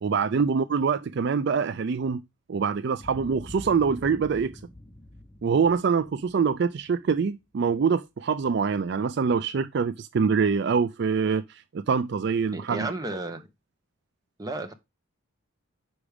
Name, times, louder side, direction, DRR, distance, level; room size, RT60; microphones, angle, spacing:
voice 1, 0.0-2.2 2.5-4.6 5.4-12.9, right 5 dB, 55° right, 0.4 m, -25 dB
Boom, 3.0-7.3, left 1 dB, 10° left, 0.6 m, -46 dB
voice 2, 12.5-13.5 14.4-14.7, right 2 dB, 15° right, 1.0 m, -33 dB
6.2 x 4.9 x 4.9 m
head